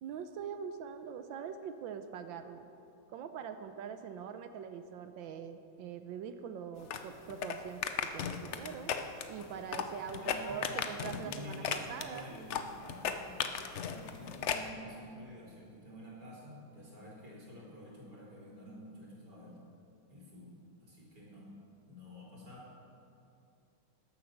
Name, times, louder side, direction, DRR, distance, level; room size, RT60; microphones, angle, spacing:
voice 1, 0.0-2.7 3.1-8.9 9.3-12.4, right 7 dB, 85° right, 9 dB, 1.4 m, -43 dB
sound 1, 6.8-14.7, left 7 dB, 70° left, 0.6 m, -37 dB
voice 2, 10.2-19.6 20.1-21.5 21.9-22.8, equal, 60° right, -5 dB, 4.3 m, -50 dB
13.0 x 10.5 x 6.4 m, 2.7 s
omnidirectional pair, 2.1 m